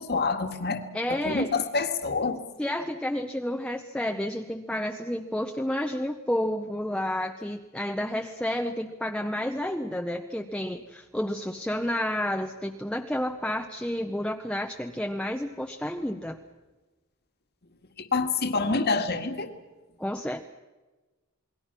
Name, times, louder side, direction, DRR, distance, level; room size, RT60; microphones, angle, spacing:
voice 1, 0.0-0.8 1.1-2.4 18.1-19.5, left 4 dB, 45° left, 7 dB, 1.9 m, -27 dB
voice 2, 0.9-1.5 2.6-16.4 20.0-20.5, left 1 dB, 5° left, 4 dB, 0.8 m, -30 dB
28.5 x 21.5 x 6.0 m, 1.2 s
head